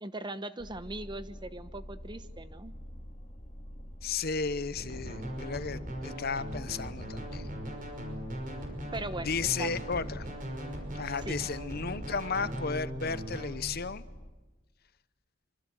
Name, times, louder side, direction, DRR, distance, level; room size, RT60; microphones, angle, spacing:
voice 1, 0.0-2.7 8.9-9.3 9.6-9.7 10.6-10.7 11.3-11.4, right 2 dB, 20° right, 12 dB, 1.0 m, -39 dB
sound 1, 0.6-14.3, equal, 35° left, 2.3 m, -46 dB
voice 2, 4.0-7.5 9.2-10.3 10.9-14.0, left 5 dB, 50° left, 15 dB, 0.9 m, -34 dB
sound 2, 4.8-13.5, equal, 40° right, 5.6 m, -39 dB
25.5 x 25.5 x 7.9 m, 1.2 s
head